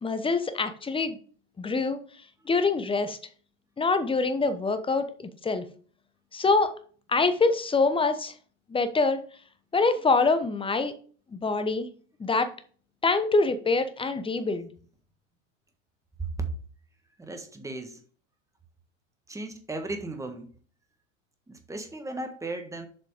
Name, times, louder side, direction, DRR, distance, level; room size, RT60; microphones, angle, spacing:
voice 1, 0.0-1.2 1.6-2.0 2.5-3.2 3.8-5.6 6.3-6.7 7.1-8.3 8.7-9.2 9.7-10.9 11.3-11.9 12.2-12.5 13.0-14.7, left 3 dB, 15° left, 1.0 m, -25 dB
voice 2, 16.2-16.5 17.2-18.0 19.3-20.5 21.5-22.9, right 3 dB, 10° right, 1.5 m, -35 dB
7.6 x 5.0 x 5.1 m
hypercardioid pair, 85°, 38 cm